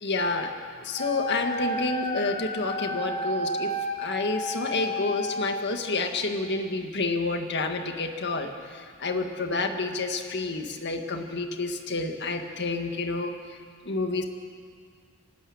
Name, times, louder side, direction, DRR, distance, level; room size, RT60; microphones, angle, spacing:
voice 1, 0.0-13.6 13.9-14.2, left 3 dB, 50° left, 5 dB, 1.9 m, -29 dB
Wind instrument woodwind instrument, 1.0-5.8, left 1 dB, 25° left, 1.7 m, -31 dB
29.5 x 12.5 x 8.7 m, 2.1 s
head